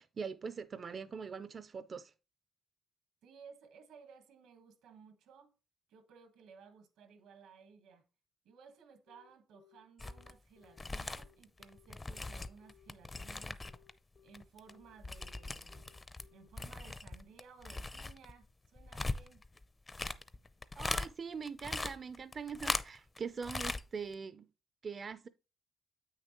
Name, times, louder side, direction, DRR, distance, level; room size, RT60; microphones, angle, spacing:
voice 1, 0.0-2.1 20.8-24.5 24.8-25.3, right 5 dB, 45° right, 0.4 m, -42 dB
voice 2, 3.2-5.5 5.9-8.0 8.4-13.6 14.2-15.9 16.3-18.5 18.7-19.4, right 6 dB, 90° right, 1.4 m, -58 dB
Telephone, 9.1-16.5, left 12 dB, 75° left, 1.3 m, -65 dB
sound 1, 10.0-10.3 10.6-13.9 14.2-16.3 16.5-21.1 21.4-23.2 23.4-23.8 24.1-24.2, left 2 dB, 25° left, 0.5 m, -40 dB
8.1 x 6.5 x 3.0 m
cardioid pair, 90°, 0 cm